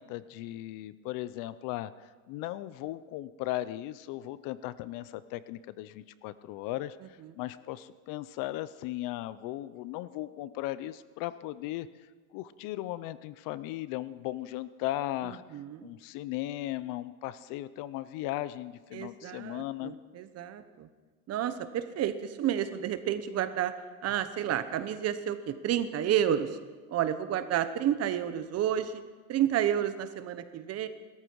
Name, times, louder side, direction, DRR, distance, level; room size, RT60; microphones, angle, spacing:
voice 1, 0.0-1.9 2.3-7.0 7.3-11.9 12.3-15.4 15.8-19.9, left 15 dB, 50° left, 16 dB, 0.7 m, -37 dB
voice 2, 15.2-15.9 18.9-20.9 21.3-23.7 24.0-26.6 26.9-29.0 29.3-30.9, right 10 dB, 35° right, 11 dB, 1.1 m, -30 dB
20.0 x 13.5 x 4.7 m, 1.4 s
supercardioid pair, 125°, 42 cm